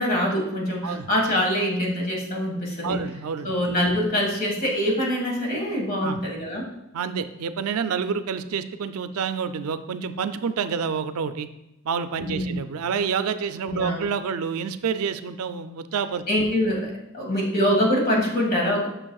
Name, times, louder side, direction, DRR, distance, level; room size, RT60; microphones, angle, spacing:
voice 1, 0.0-3.0 3.4-6.7 12.3-12.5 13.7-14.0 16.3-18.9, equal, 40° left, -1 dB, 1.8 m, -24 dB
voice 2, 2.8-3.6 6.0-6.2 6.9-11.5 11.8-16.2, right 6 dB, 85° right, 10 dB, 0.4 m, -28 dB
8.8 x 6.3 x 2.3 m, 0.91 s
head